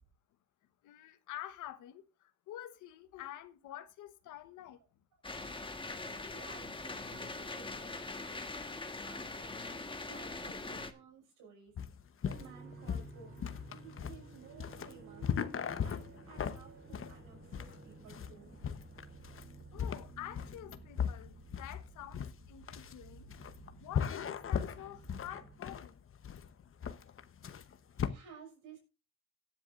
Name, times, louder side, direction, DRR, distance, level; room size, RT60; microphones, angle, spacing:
voice 1, 0.8-4.8 5.4-5.9 10.7-10.8 11.7-11.8 19.7-23.3 23.8-26.0, left 12 dB, 85° left, 1.2 m, -48 dB
sound 1, 5.2-10.9, left 3 dB, 15° left, 1.4 m, -42 dB
voice 2, 6.2-11.7 12.2-13.4 13.7-15.3 15.7-18.6 28.0-28.8, right 5 dB, 90° right, 6.1 m, -56 dB
sound 2, 11.8-28.1, left 8 dB, 45° left, 1.1 m, -38 dB
sound 3, 12.3-25.6, right 3 dB, 40° right, 4.4 m, -54 dB
18.0 x 10.0 x 2.5 m
cardioid pair, 90°, 30 cm